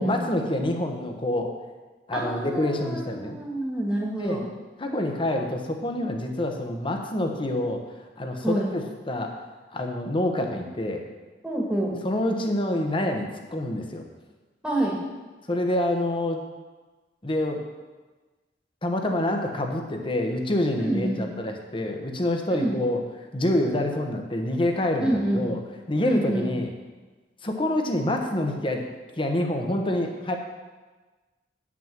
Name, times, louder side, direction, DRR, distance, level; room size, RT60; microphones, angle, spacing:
voice 1, 0.0-1.5 2.1-3.4 4.2-4.4 4.8-7.8 8.2-9.3 9.7-11.0 12.0-14.0 15.5-16.4 17.2-17.6 18.8-23.0 23.3-25.6 25.9-26.7 27.4-28.9 29.2-30.4, left 1 dB, 30° left, 3 dB, 1.2 m, -27 dB
voice 2, 2.1-4.5 8.4-8.7 11.4-12.0 14.6-15.0 20.8-21.2 22.5-22.8 25.0-25.5 26.0-26.5, right 1 dB, 5° right, -4 dB, 1.8 m, -27 dB
9.0 x 6.2 x 7.5 m, 1.3 s
head